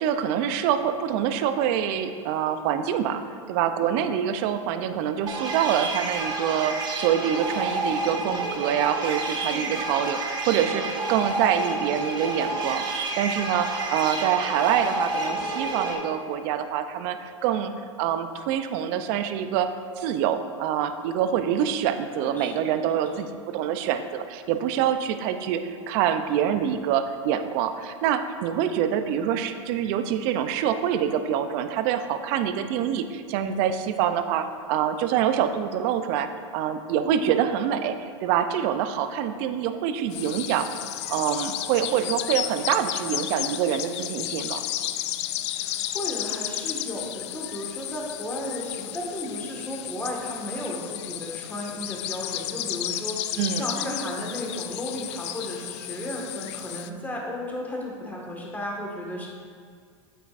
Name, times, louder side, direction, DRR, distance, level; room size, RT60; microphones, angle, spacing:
voice 1, 0.0-3.2 3.5-17.7 18.0-19.7 20.0-40.7 41.1-44.6 53.4-53.7, right 9 dB, 50° right, 9 dB, 0.6 m, -26 dB
sound 1, 5.3-15.9, right 3 dB, 25° right, 1.3 m, -29 dB
voice 2, 9.5-9.8 22.2-22.8 37.0-37.4 45.5-59.3, left 1 dB, 10° left, -2 dB, 1.7 m, -34 dB
sound 2, 40.1-56.9, left 13 dB, 60° left, 0.4 m, -33 dB
9.1 x 7.8 x 2.6 m, 2.1 s
hypercardioid pair, 105°, 16 cm